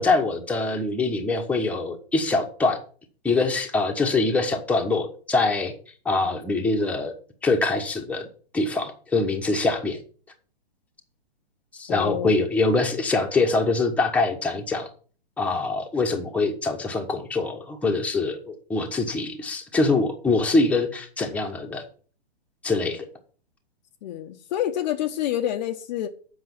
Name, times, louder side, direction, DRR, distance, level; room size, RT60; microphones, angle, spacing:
voice 1, 0.0-2.8 3.2-5.7 6.0-7.1 7.4-8.3 8.5-10.0 11.8-14.9 15.4-21.8 22.6-23.1, left 3 dB, 5° left, 1.3 m, -24 dB
voice 2, 11.9-12.3 24.0-26.1, left 11 dB, 45° left, 0.9 m, -27 dB
7.9 x 5.5 x 7.2 m
hypercardioid pair, 130°, 32 cm